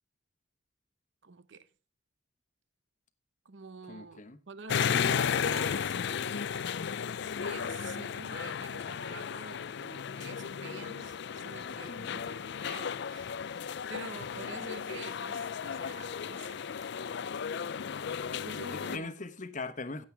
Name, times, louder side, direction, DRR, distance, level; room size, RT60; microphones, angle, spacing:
voice 1, 1.2-1.7 3.4-6.5 7.4-13.3 13.5-16.9 18.3-19.1, right 4 dB, 65° right, 0.8 m, -47 dB
voice 2, 3.9-4.4 11.7-12.2 18.7-20.0, left 3 dB, 40° left, 1.1 m, -41 dB
sound 1, 4.7-19.0, left 7 dB, 60° left, 0.4 m, -34 dB
16.0 x 7.7 x 3.4 m
head